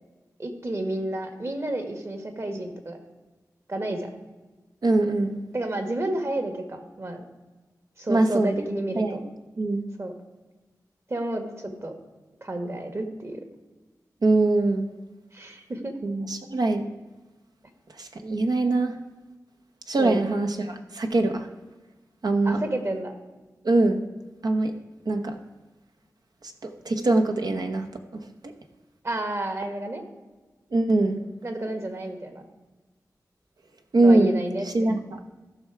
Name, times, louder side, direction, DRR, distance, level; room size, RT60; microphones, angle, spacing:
voice 1, 0.4-3.0 3.7-4.1 5.5-7.3 8.0-9.2 10.0-10.1 11.1-11.9 12.4-13.4 15.3-15.9 20.0-20.2 22.4-23.1 29.0-30.0 31.4-32.5 34.0-34.9, right 1 dB, 40° right, 6 dB, 1.5 m, -31 dB
voice 2, 4.8-5.4 8.1-8.5 8.9-9.2 9.6-9.8 14.2-14.9 16.0-16.9 18.0-18.9 19.9-21.5 22.2-22.6 23.6-24.0 24.4-24.7 25.1-25.4 26.6-27.9 28.1-28.5 30.7-31.2 33.9-34.4 34.7-35.2, right 2 dB, 75° right, 5 dB, 1.0 m, -23 dB
14.0 x 5.9 x 4.6 m, 1.2 s
wide cardioid pair, 65°, 7 cm